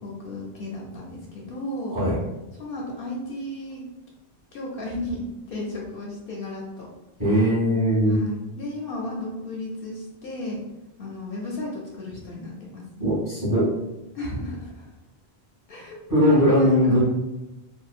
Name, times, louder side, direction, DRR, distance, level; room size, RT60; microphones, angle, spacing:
voice 1, 0.0-2.0 2.6-3.8 4.5-6.9 8.1-10.6 11.0-12.8 14.1-14.9 15.7-15.9 16.6-17.0, left 1 dB, 65° left, -2 dB, 0.7 m, -34 dB
voice 2, 7.2-8.2 13.0-13.7 16.1-17.0, equal, 20° right, -9 dB, 1.0 m, -20 dB
2.8 x 2.0 x 2.4 m, 0.94 s
omnidirectional pair, 1.1 m